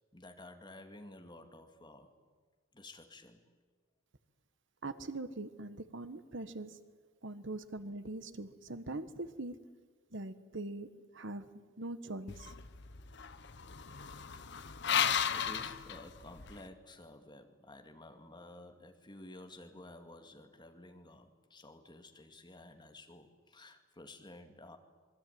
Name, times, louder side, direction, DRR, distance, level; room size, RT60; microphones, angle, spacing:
voice 1, 0.1-2.1 2.7-3.4 14.3-14.4 15.3-24.8, left 2 dB, 25° left, 5 dB, 2.4 m, -53 dB
voice 2, 4.8-6.8 7.2-9.6 10.1-10.9 11.1-11.5 11.8-12.5, right 2 dB, 65° right, 12 dB, 1.3 m, -42 dB
sound 1, 12.3-16.6, left 8 dB, 60° left, 1.2 m, -35 dB
26.5 x 22.0 x 9.4 m, 1.5 s
head